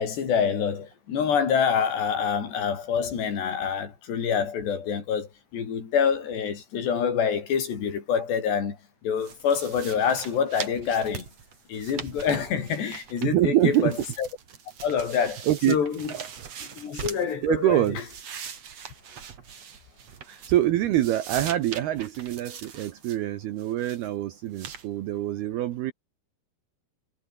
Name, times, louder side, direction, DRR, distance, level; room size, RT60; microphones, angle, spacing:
voice 1, 0.0-8.8 9.0-11.3 11.7-14.3 14.8-16.1 16.7-18.0, left 7 dB, 65° left, 6.2 m, -26 dB
sound 1, 9.2-13.5 13.7-17.3 17.7-20.7 20.9-23.2 23.6-24.1 24.5-24.9, right 7 dB, 45° right, 2.9 m, -41 dB
voice 2, 13.2-13.9 15.5-15.8 16.1-16.3 17.4-18.0 20.3-25.9, right 13 dB, 70° right, 2.8 m, -25 dB
omnidirectional pair, 5.3 m